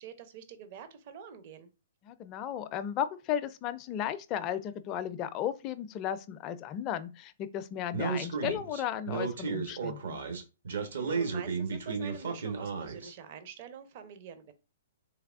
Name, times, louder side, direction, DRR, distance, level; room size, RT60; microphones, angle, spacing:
voice 1, 0.0-1.7 11.0-14.5, right 7 dB, 45° right, 0.6 m, -46 dB
voice 2, 2.0-10.2, left 10 dB, 30° left, 0.4 m, -35 dB
Speech, 7.9-13.1, right 5 dB, 70° right, 0.9 m, -33 dB
3.3 x 3.1 x 2.4 m
figure-of-eight pair, 120°, 0 cm